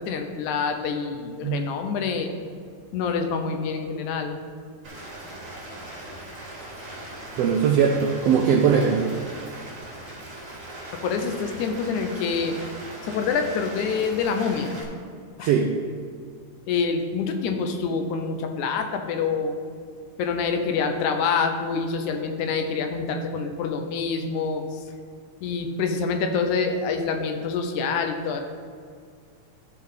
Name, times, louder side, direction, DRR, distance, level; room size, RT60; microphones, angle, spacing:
voice 1, 0.0-2.3 2.9-4.4 11.0-12.6 13.0-14.8 15.4-15.5 16.7-19.6 20.2-24.8 25.4-28.4, left 5 dB, 90° left, 5 dB, 2.2 m, -26 dB
Rain, 4.8-14.8, right 1 dB, 40° right, 1.2 m, -39 dB
voice 2, 7.4-9.1 15.4-15.7, right 7 dB, 85° right, 2 dB, 1.4 m, -20 dB
14.0 x 4.7 x 3.7 m, 2.1 s
omnidirectional pair, 3.4 m